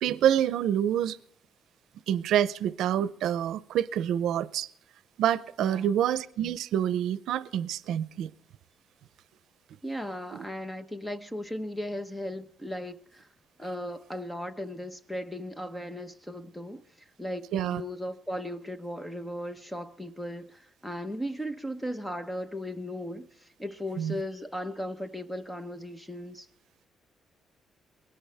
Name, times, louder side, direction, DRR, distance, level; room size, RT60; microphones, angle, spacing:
voice 1, 0.0-1.2 2.1-4.7 5.2-8.3 10.3-10.4 17.5-17.8 24.0-24.2, right 10 dB, 80° right, 0.6 m, -27 dB
voice 2, 5.6-6.0 9.8-13.3 13.6-26.5, equal, 5° left, 1.0 m, -37 dB
20.5 x 18.0 x 3.5 m
cardioid pair, 160°, 0 cm